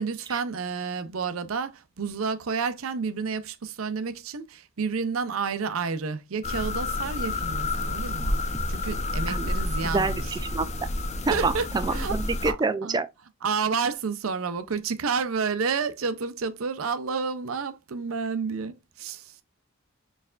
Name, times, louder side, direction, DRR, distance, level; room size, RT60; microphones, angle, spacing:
voice 1, 0.0-8.4 8.7-10.3 11.3-11.7 11.9-12.2 12.4-12.6 12.8-13.0 13.4-19.4, right 5 dB, 85° right, 0.6 m, -30 dB
sound 1, 6.4-12.5, left 2 dB, 35° left, 0.6 m, -29 dB
voice 2, 9.9-10.7 11.3-13.1, right 3 dB, 20° right, 0.3 m, -27 dB
4.3 x 3.3 x 2.4 m
head